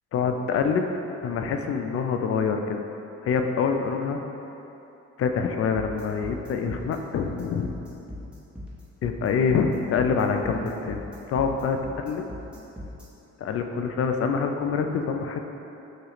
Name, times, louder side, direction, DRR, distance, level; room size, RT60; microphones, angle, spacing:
voice 1, 0.1-0.9 1.2-2.8 3.2-4.2 5.2-7.7 9.0-11.0 11.3-12.2 13.4-15.4, left 5 dB, 50° left, 5 dB, 0.4 m, -25 dB
sound 1, 5.7-13.0, left 1 dB, 5° right, 0.9 m, -39 dB
6.1 x 2.4 x 2.9 m, 3.0 s
cardioid pair, 90°, 30 cm